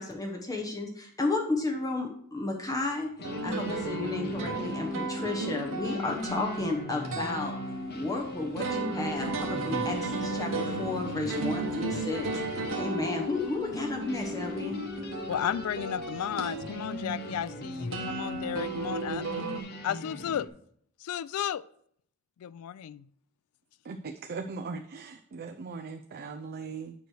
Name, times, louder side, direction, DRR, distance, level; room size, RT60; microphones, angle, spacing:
voice 1, 0.0-3.1 3.4-7.5 7.9-14.8, left 2 dB, 15° left, 0 dB, 0.9 m, -33 dB
sound 1, 3.2-20.5, left 1 dB, 45° left, 0.8 m, -39 dB
sound 2, 3.2-19.6, right 2 dB, 65° right, 1.2 m, -35 dB
voice 2, 15.3-19.3 19.8-20.5 21.0-21.6 22.4-23.1, left 9 dB, 80° left, 20 dB, 0.3 m, -33 dB
voice 3, 23.9-26.9, right 4 dB, 45° right, 6 dB, 0.4 m, -39 dB
9.3 x 3.1 x 6.3 m, 0.66 s
head